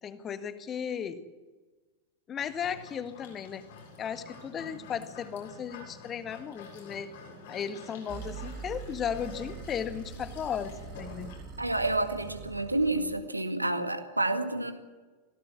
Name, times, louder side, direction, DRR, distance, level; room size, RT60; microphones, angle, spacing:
voice 1, 0.0-1.2 2.3-3.7 4.0-7.1 7.5-11.3, left 8 dB, 25° left, 10 dB, 1.7 m, -35 dB
sound 1, 2.4-11.4, left 4 dB, 55° left, 7.5 m, -48 dB
sound 2, 8.1-13.3, right 7 dB, 35° right, 2.1 m, -44 dB
voice 2, 11.6-14.7, right 2 dB, 85° right, 7 dB, 2.1 m, -29 dB
25.0 x 17.5 x 7.4 m, 1.3 s
figure-of-eight pair, 90°, 0 cm